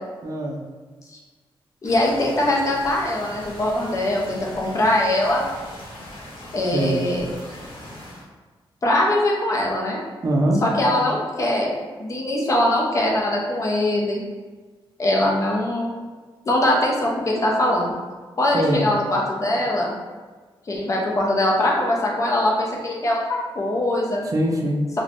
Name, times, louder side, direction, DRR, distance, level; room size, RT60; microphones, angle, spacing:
voice 1, 0.2-0.6 6.7-7.0 10.2-11.1 18.5-18.8 24.2-24.8, right 1 dB, 40° right, 0 dB, 0.4 m, -23 dB
sound 1, 1.8-8.3, left 1 dB, 90° left, 0.8 m, -40 dB
voice 2, 1.8-5.4 6.5-7.3 8.8-10.0 10.6-11.7 12.0-14.2 15.0-15.9 16.5-17.9 18.4-20.0 20.7-24.2, left 1 dB, 35° left, -2 dB, 0.5 m, -22 dB
3.0 x 2.1 x 2.5 m, 1.4 s
wide cardioid pair, 140°, 9 cm